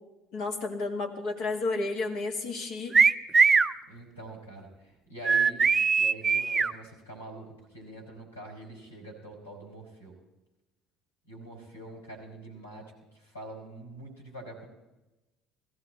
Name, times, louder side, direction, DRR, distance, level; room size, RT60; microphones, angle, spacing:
voice 1, 0.3-3.0, left 3 dB, 60° left, 3 dB, 2.1 m, -32 dB
sound 1, 2.9-3.7 5.2-6.7, right 5 dB, 30° right, 0.6 m, -21 dB
voice 2, 3.9-5.6 6.0-10.1 11.3-14.7, right 1 dB, 85° left, 0 dB, 4.3 m, -45 dB
18.0 x 15.5 x 4.2 m, 1.0 s
figure-of-eight pair, 60°, 0 cm